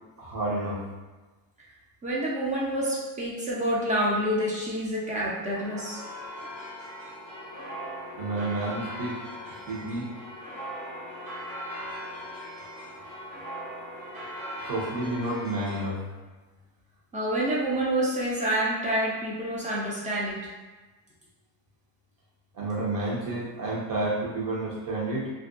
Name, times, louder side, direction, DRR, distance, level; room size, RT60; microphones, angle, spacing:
voice 1, 0.2-0.8 8.2-9.2 9.7-10.1 14.7-16.0 22.5-25.3, right 2 dB, 45° right, -5 dB, 0.8 m, -30 dB
voice 2, 2.0-6.0 17.1-20.5, right 1 dB, 20° right, -5 dB, 0.3 m, -28 dB
sound 1, 5.5-15.9, equal, 85° right, 1.2 m, -39 dB
2.5 x 2.2 x 2.4 m, 1.2 s
cardioid pair, 130°, 46 cm